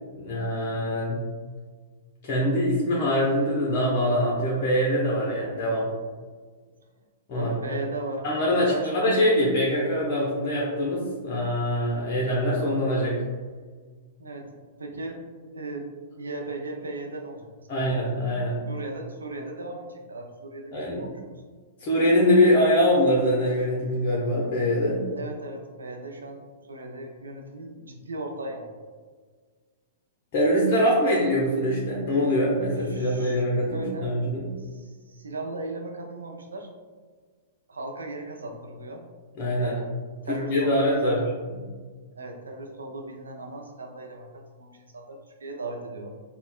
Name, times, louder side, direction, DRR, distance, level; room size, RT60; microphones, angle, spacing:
voice 1, 0.2-1.2 2.2-5.9 7.3-7.5 8.2-13.2 17.7-18.7 20.7-21.1 21.8-25.1 30.3-34.5 39.4-39.7 40.3-41.2 41.6-41.7, equal, 40° left, -4 dB, 0.6 m, -23 dB
voice 2, 7.3-8.2 8.6-8.9 14.2-15.9 16.2-17.7 18.7-21.3 25.1-28.7 32.8-33.4 33.7-34.1 34.6-36.7 37.7-39.1 39.6-39.9 40.3-41.2 42.1-46.1, right 2 dB, 85° right, 2 dB, 0.5 m, -37 dB
4.3 x 2.0 x 2.2 m, 1.5 s
hypercardioid pair, 110°, 0 cm